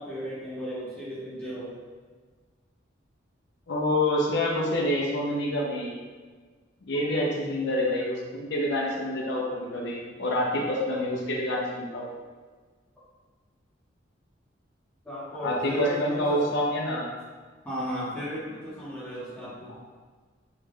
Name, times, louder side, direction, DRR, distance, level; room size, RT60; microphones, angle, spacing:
voice 1, 0.0-1.7 15.0-16.4 17.6-19.8, equal, 10° left, -10 dB, 0.7 m, -35 dB
voice 2, 3.7-6.0 6.8-12.1 15.4-17.1, left 1 dB, 65° left, -2 dB, 0.5 m, -27 dB
3.6 x 2.2 x 3.3 m, 1.4 s
head